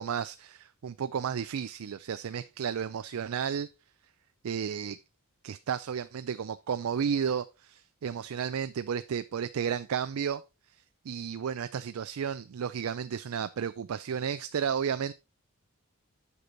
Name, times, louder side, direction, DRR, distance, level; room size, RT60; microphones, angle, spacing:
voice 1, 0.0-3.7 4.4-5.0 5.4-10.4 11.1-15.1, right 7 dB, 70° right, 0.4 m, -32 dB
8.2 x 6.0 x 3.9 m
head